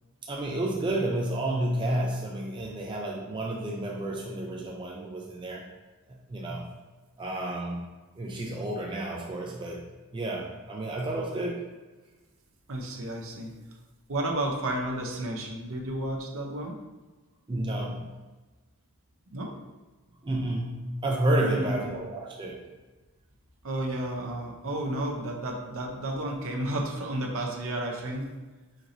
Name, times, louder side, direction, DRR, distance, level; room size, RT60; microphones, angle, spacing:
voice 1, 0.3-5.6 6.3-6.7 7.2-7.9 8.2-9.9 10.1-11.6 17.5-18.1 20.2-22.6, right 1 dB, 20° right, -2 dB, 0.4 m, -30 dB
voice 2, 12.7-13.5 14.1-16.7 19.3-19.5 21.4-21.8 23.6-28.3, right 1 dB, 65° right, 1 dB, 0.7 m, -32 dB
4.6 x 2.7 x 3.8 m, 1.2 s
head